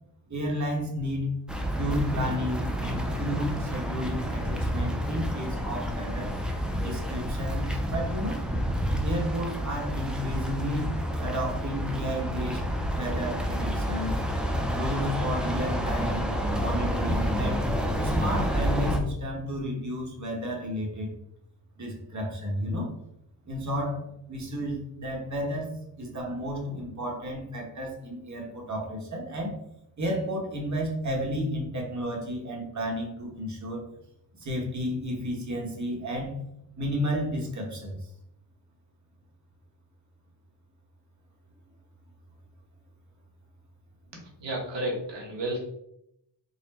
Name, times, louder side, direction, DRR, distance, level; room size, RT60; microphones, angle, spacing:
voice 1, 0.3-1.4 1.7-6.3 6.8-8.4 9.0-10.9 11.2-14.1 14.7-16.3 16.6-17.7 18.0-21.1 21.8-22.9 23.4-29.5 30.0-33.8 34.4-36.4 36.8-38.0, equal, 40° right, 0 dB, 1.1 m, -32 dB
sound 1, 1.5-19.0, equal, ahead, 0.4 m, -29 dB
voice 2, 44.4-45.6, right 1 dB, 85° right, -1 dB, 1.4 m, -31 dB
4.1 x 2.1 x 4.1 m, 0.79 s
wide cardioid pair, 130°, 42 cm